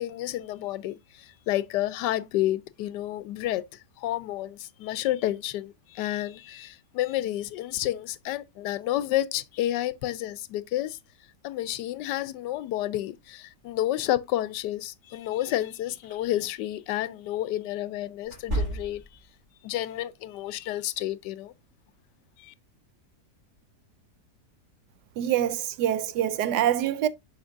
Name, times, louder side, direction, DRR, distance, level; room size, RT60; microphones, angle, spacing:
voice 1, 0.0-11.0 11.4-19.0 19.6-21.5 22.4-22.5, left 14 dB, 85° left, 1.2 m, -30 dB
sound 1, 16.0-16.2 18.2-19.3, right 1 dB, 40° right, 3.9 m, -31 dB
voice 2, 25.2-27.1, right 11 dB, 90° right, 1.3 m, -25 dB
7.1 x 5.8 x 2.4 m
omnidirectional pair, 1.8 m